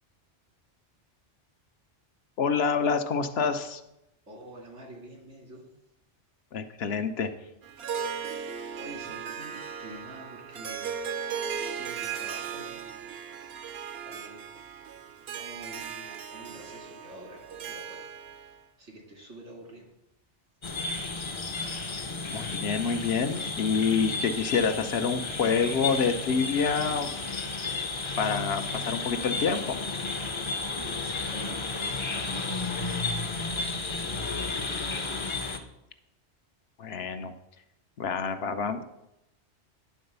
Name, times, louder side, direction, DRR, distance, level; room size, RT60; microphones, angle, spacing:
voice 1, 2.4-3.8 6.5-7.3 22.3-27.1 28.2-29.8 36.8-37.3 38.0-38.8, left 5 dB, 65° left, 8 dB, 0.9 m, -27 dB
voice 2, 4.3-5.6 8.8-11.1 11.7-13.1 13.7-14.5 15.3-19.9 30.7-31.6 31.9-33.0 33.9-35.3, right 1 dB, 85° right, -1 dB, 2.6 m, -47 dB
Harp, 7.6-18.6, right 7 dB, 65° right, 0.9 m, -37 dB
sound 1, 20.6-35.6, left 3 dB, 35° left, 0.6 m, -33 dB
10.0 x 3.9 x 6.7 m, 0.87 s
omnidirectional pair, 1.2 m